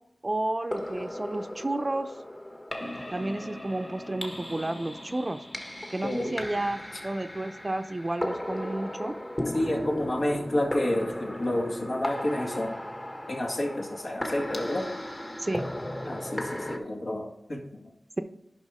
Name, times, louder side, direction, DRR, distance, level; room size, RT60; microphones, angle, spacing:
voice 1, 0.2-2.1 3.1-5.4 5.9-9.1 15.4-15.6, right 2 dB, 35° right, 9 dB, 0.7 m, -31 dB
sound 1, 0.6-16.8, left 1 dB, 25° left, 1.6 m, -36 dB
voice 2, 9.5-12.8 13.3-14.9 16.0-17.8, left 1 dB, 60° left, 0 dB, 2.1 m, -29 dB
11.0 x 5.6 x 3.7 m, 0.80 s
cardioid pair, 45°, 0 cm